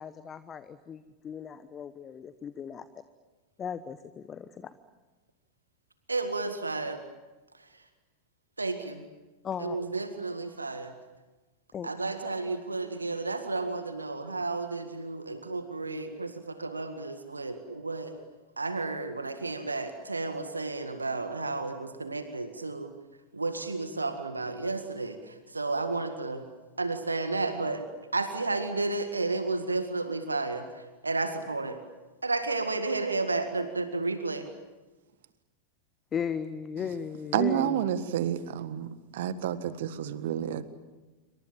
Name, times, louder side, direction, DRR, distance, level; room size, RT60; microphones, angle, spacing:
voice 1, 0.0-2.9 3.6-4.8 9.4-9.8 11.7-11.9 36.1-37.8, left 7 dB, 25° left, 15 dB, 1.1 m, -36 dB
voice 2, 6.1-7.0 8.6-9.0 9.6-10.9 11.8-18.1 18.6-22.9 23.3-26.4 26.8-27.8 28.1-31.8 32.2-34.5, right 3 dB, 80° right, 8 dB, 1.9 m, -32 dB
voice 3, 37.3-38.9 39.1-40.7, right 10 dB, 55° right, 13 dB, 1.6 m, -29 dB
27.5 x 25.0 x 7.6 m, 1.2 s
figure-of-eight pair, 90°, 0 cm